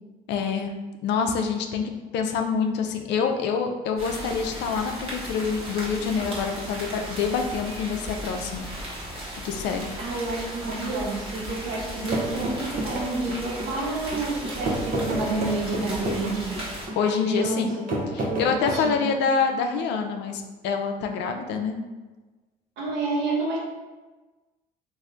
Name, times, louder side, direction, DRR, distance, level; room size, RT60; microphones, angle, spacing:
voice 1, 0.3-0.7 1.0-8.6 9.4-9.9 17.0-17.8 18.1-21.8, left 5 dB, 65° left, 5 dB, 0.4 m, -26 dB
sound 1, 4.0-16.9, equal, 30° right, 1.2 m, -36 dB
voice 2, 10.0-17.0 17.2-19.0 22.8-23.6, right 2 dB, 65° right, -4 dB, 1.1 m, -29 dB
sound 2, 12.1-18.8, right 2 dB, 45° right, 0.7 m, -31 dB
3.1 x 2.6 x 2.4 m, 1.2 s
supercardioid pair, 70°, 19 cm